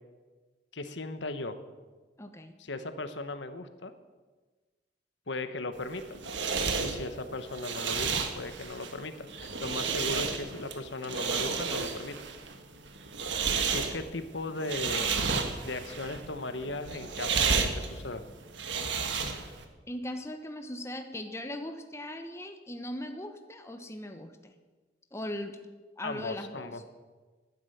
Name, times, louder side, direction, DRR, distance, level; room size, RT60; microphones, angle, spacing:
voice 1, 0.7-1.6 2.6-3.9 5.3-6.2 6.8-12.2 13.7-15.1 15.6-18.2 26.0-26.8, left 2 dB, 80° left, 10 dB, 1.1 m, -37 dB
voice 2, 2.2-2.6 19.9-24.5 25.1-25.6 26.0-26.7, left 1 dB, 15° left, 6 dB, 1.0 m, -39 dB
sound 1, 5.8-19.6, right 5 dB, 80° right, 1.6 m, -32 dB
12.0 x 9.9 x 9.3 m, 1.3 s
head